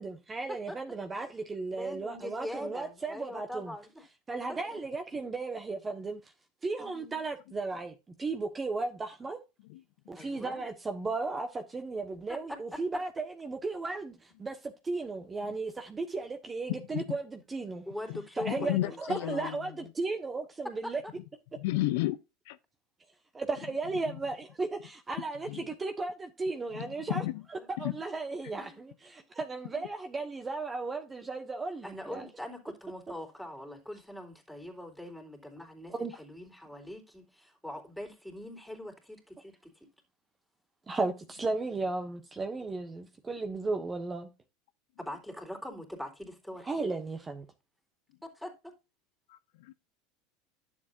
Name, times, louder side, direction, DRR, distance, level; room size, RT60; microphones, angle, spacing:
voice 1, 0.0-3.7 4.3-6.2 6.6-9.4 10.1-17.9 18.4-21.0 23.3-27.2 27.7-32.3 35.9-36.1 40.9-44.3 46.7-47.4, right 3 dB, 20° right, 1.3 m, -35 dB
voice 2, 0.7-1.3 1.7-4.1 4.6-4.8 6.8-7.2 10.2-10.6 12.3-12.8 17.9-19.4 27.5-27.7 28.6-28.8 31.8-39.7 45.0-46.9 48.2-48.7, left 1 dB, ahead, 3.5 m, -43 dB
voice 3, 18.4-19.6 21.6-22.2 22.5-22.6 25.5-25.6 26.7-27.4 27.8-27.9 49.3-49.7, left 17 dB, 70° left, 0.5 m, -32 dB
11.0 x 7.3 x 2.5 m
hypercardioid pair, 85°, 0 cm